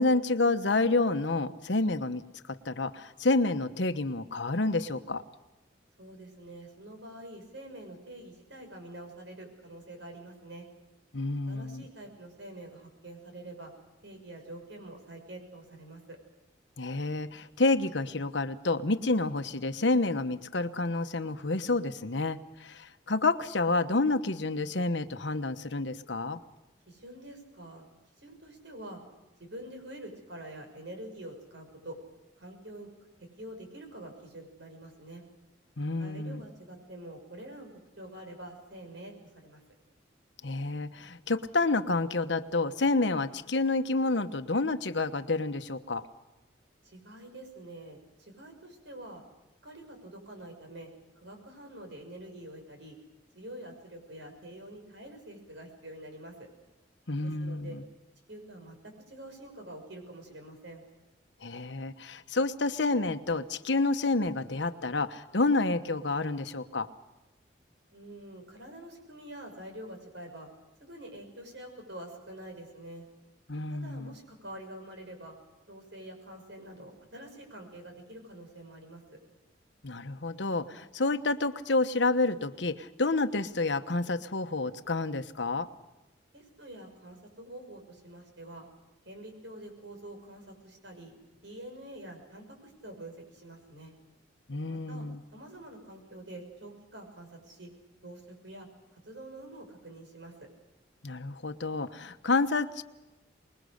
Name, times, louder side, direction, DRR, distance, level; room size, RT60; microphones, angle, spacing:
voice 1, 0.0-2.2 2.5-5.2 11.1-11.9 16.8-26.4 35.8-36.4 40.4-46.1 57.1-57.8 61.4-66.9 73.5-74.1 79.8-85.7 94.5-95.2 101.0-102.8, left 3 dB, 70° left, 10 dB, 1.1 m, -29 dB
voice 2, 6.0-10.6 11.5-13.7 14.0-16.2 26.9-27.8 28.2-29.0 29.4-32.0 32.4-32.9 33.4-35.2 36.0-37.7 38.0-39.6 46.8-49.2 49.6-50.9 51.1-53.0 53.3-56.5 57.2-57.8 58.3-60.8 67.9-70.5 70.8-73.0 73.7-75.4 75.7-79.2 86.3-88.7 89.0-91.1 91.4-93.9 94.7-95.1 95.3-97.7 98.0-98.7 98.9-100.5, right 1 dB, 70° right, 4 dB, 6.3 m, -46 dB
25.5 x 21.5 x 6.5 m, 1.0 s
head